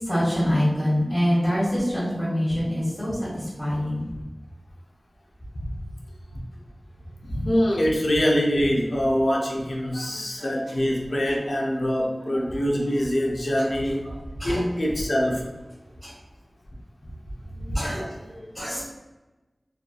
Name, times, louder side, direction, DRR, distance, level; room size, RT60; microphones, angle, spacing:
voice 1, 0.0-4.1 9.8-10.8 13.6-13.7 14.0-14.6 16.0-16.1 17.5-18.9, equal, 10° right, -9 dB, 1.2 m, -26 dB
voice 2, 7.3-14.0 14.4-15.5 17.7-17.8, equal, 70° left, -1 dB, 0.5 m, -24 dB
2.6 x 2.4 x 2.3 m, 1.1 s
wide cardioid pair, 45°, 0 cm